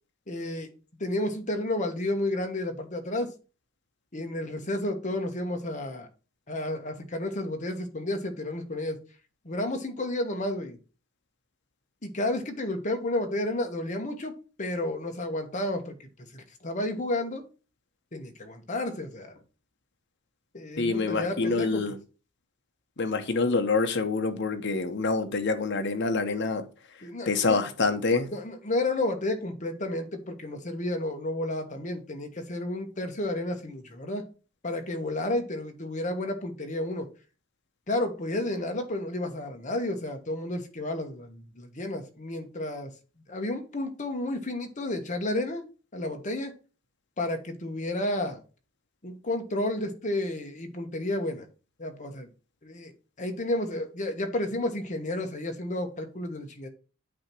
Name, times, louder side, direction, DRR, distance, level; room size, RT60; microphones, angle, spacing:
voice 1, 0.3-0.7 1.0-3.3 4.1-6.1 6.5-9.0 9.4-10.8 12.0-14.3 14.6-17.4 18.1-19.4 20.5-21.9 27.0-27.6 28.3-34.2 34.6-37.1 37.9-42.9 43.3-45.6 45.9-46.5 47.2-48.4 49.0-51.4 51.8-52.3 52.6-52.9 53.2-56.7, left 1 dB, 40° left, 1.2 m, -31 dB
voice 2, 20.8-22.0 23.0-26.6 27.3-28.3, left 3 dB, 60° left, 0.9 m, -26 dB
8.6 x 2.9 x 6.0 m
head